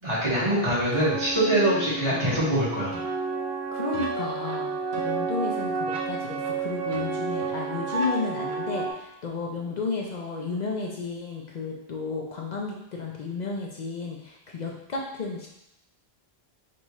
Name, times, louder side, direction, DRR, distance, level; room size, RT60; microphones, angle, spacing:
voice 1, 0.0-3.0, right 1 dB, 30° right, -9 dB, 1.7 m, -24 dB
sound 1, 0.9-8.9, right 4 dB, 85° right, 1.0 m, -31 dB
voice 2, 3.7-15.5, left 4 dB, 50° left, -1 dB, 0.6 m, -33 dB
4.2 x 3.5 x 3.0 m, 0.83 s
omnidirectional pair, 1.0 m